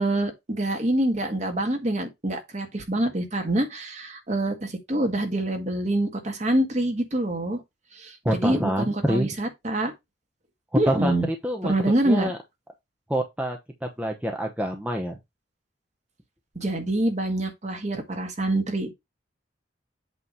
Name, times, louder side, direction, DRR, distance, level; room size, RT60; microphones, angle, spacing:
voice 1, 0.0-7.6 8.0-9.9 10.8-11.3 11.6-12.3 16.6-18.9, right 1 dB, 40° right, 1.7 m, -26 dB
voice 2, 8.2-9.3 10.9-11.7 12.0-12.4 13.1-15.2, equal, 5° right, 0.9 m, -27 dB
8.2 x 3.2 x 5.5 m
head